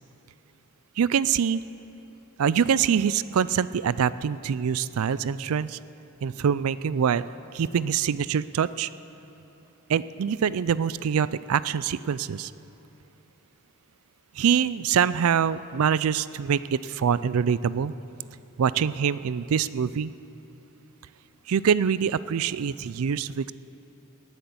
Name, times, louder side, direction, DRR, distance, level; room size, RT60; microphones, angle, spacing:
voice 1, 1.0-1.6 2.4-5.8 6.2-7.2 7.5-8.9 9.9-12.5 14.4-17.9 18.6-20.1 21.5-23.5, right 7 dB, 70° right, 17 dB, 0.4 m, -24 dB
18.0 x 10.0 x 7.1 m, 3.0 s
head